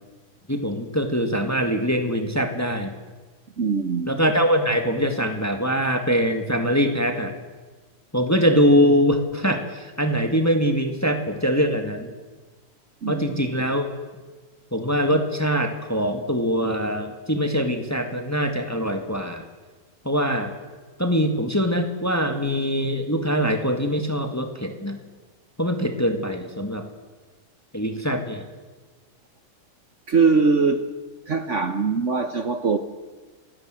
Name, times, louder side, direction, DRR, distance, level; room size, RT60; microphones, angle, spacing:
voice 1, 0.5-2.9 4.0-7.3 8.1-12.1 13.1-13.9 14.7-19.5 20.0-20.5 21.0-25.0 25.6-26.8 27.7-28.4, equal, 10° left, 1.7 m, -23 dB
voice 2, 3.6-4.2 13.0-13.4 30.1-30.9 31.3-32.8, right 4 dB, 45° right, 1.1 m, -22 dB
28.5 x 17.5 x 7.7 m
omnidirectional pair, 2.2 m